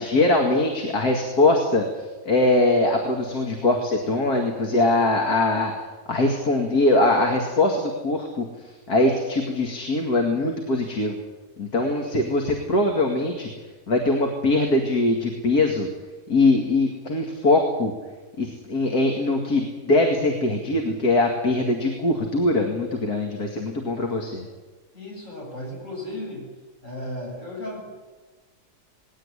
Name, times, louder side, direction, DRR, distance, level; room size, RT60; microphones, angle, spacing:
voice 1, 0.0-1.9 2.2-5.7 6.1-8.5 8.9-11.2 11.6-13.5 13.9-15.9 16.3-17.9 18.4-24.4, left 2 dB, 80° left, 2 dB, 2.8 m, -22 dB
voice 2, 24.9-26.5 26.8-27.9, left 1 dB, 55° left, -3 dB, 8.3 m, -35 dB
20.0 x 17.0 x 9.9 m, 1.3 s
omnidirectional pair, 1.6 m